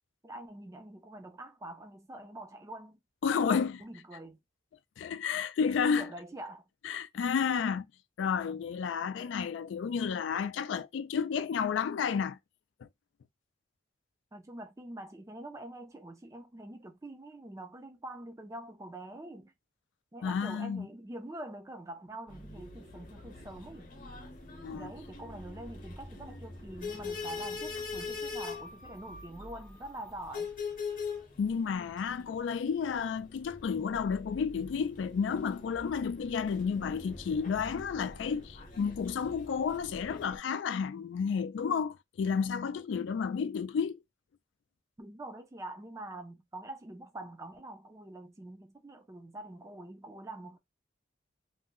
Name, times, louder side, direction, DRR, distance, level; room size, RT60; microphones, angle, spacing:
voice 1, 0.2-3.0 3.3-4.4 6.0-6.7 14.3-19.5 20.1-23.9 24.7-30.5 45.0-50.6, right 1 dB, 15° right, 0.4 m, -45 dB
voice 2, 3.2-3.8 5.0-6.1 6.8-7.9 8.2-12.4 12.8-12.9 20.2-20.9 24.6-24.9 31.4-44.0, left 6 dB, 75° left, 0.3 m, -31 dB
sound 1, 22.3-40.4, left 4 dB, 45° left, 0.7 m, -43 dB
2.6 x 2.1 x 3.6 m
head